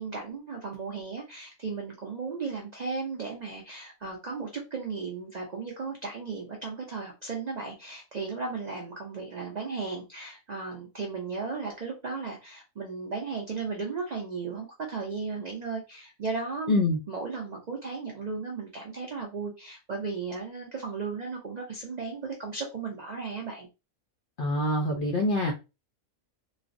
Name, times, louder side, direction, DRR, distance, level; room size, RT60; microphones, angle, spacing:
voice 1, 0.0-16.8 17.1-23.7, right 4 dB, 85° right, 0.3 m, -35 dB
voice 2, 24.4-25.5, left 1 dB, 70° left, 0.5 m, -25 dB
3.2 x 2.0 x 2.5 m
omnidirectional pair, 1.5 m